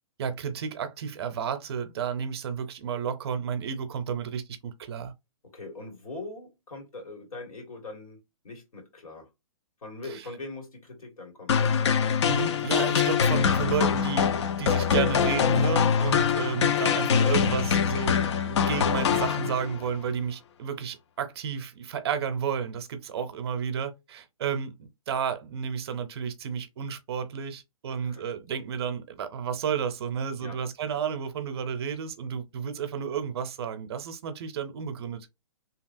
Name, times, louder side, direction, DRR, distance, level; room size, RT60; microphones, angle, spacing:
voice 1, 0.2-5.1 12.3-24.8 25.1-35.3, right 7 dB, 45° right, 0.6 m, -32 dB
voice 2, 5.5-9.3 9.8-11.5 28.0-28.3 30.4-30.6, left 2 dB, 85° left, 1.8 m, -42 dB
sound 1, 11.5-19.9, left 7 dB, 55° left, 0.4 m, -24 dB
2.8 x 2.7 x 2.4 m
hypercardioid pair, 155°, 18 cm